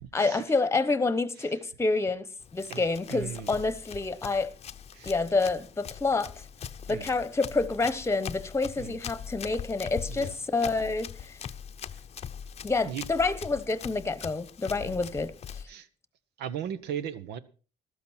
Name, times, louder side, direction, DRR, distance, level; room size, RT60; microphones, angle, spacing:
voice 1, 0.1-4.5 5.1-6.4 6.9-11.4 12.6-15.6, left 3 dB, 15° left, 1.1 m, -28 dB
Run, 2.4-15.6, left 8 dB, 40° left, 0.7 m, -42 dB
voice 2, 2.7-3.6 4.9-5.1 6.9-7.1 8.8-9.0 10.1-10.3 11.9-12.0 12.8-13.1 14.8-15.1 15.7-15.9 16.4-17.4, right 9 dB, 85° right, 1.2 m, -37 dB
14.0 x 13.0 x 4.4 m
cardioid pair, 110°, 17 cm